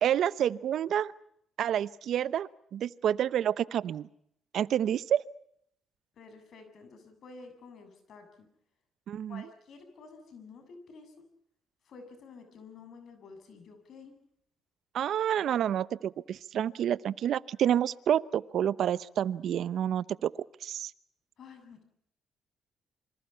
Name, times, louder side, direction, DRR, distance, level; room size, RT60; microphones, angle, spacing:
voice 1, 0.0-1.1 1.6-4.1 4.5-5.2 9.1-9.4 14.9-20.3 20.6-20.9, right 10 dB, 70° right, 17 dB, 0.9 m, -29 dB
voice 2, 6.2-8.5 9.3-11.2 11.8-14.1 21.4-21.8, left 4 dB, 65° left, 8 dB, 7.7 m, -50 dB
27.0 x 25.5 x 5.7 m, 0.72 s
cardioid pair, 90°, 0 cm